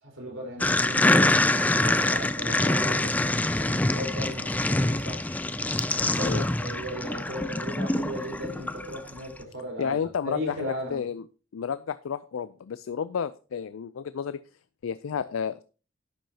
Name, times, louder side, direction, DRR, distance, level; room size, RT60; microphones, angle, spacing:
voice 1, 0.0-5.2 6.2-10.0 10.2-11.0, equal, 75° right, 4.3 m, -37 dB
sound 1, 0.6-9.2, left 2 dB, 10° left, 0.3 m, -25 dB
voice 2, 9.8-11.2 11.5-14.4 14.8-15.6, left 7 dB, 90° left, 0.4 m, -31 dB
11.5 x 9.2 x 2.8 m
head